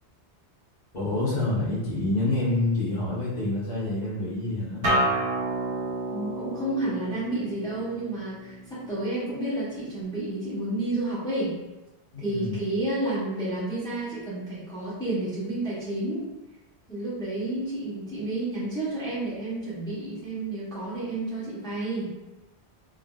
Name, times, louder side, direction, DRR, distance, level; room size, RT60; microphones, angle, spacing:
voice 1, 0.9-4.9 12.1-12.6, left 2 dB, 40° left, -7 dB, 1.0 m, -27 dB
Acoustic guitar, 4.8-10.0, right 1 dB, 65° right, 1.1 m, -30 dB
voice 2, 6.1-11.5 12.2-16.3 16.9-22.1, right 2 dB, 5° left, -10 dB, 0.8 m, -30 dB
3.4 x 2.5 x 2.3 m, 1.1 s
omnidirectional pair, 1.2 m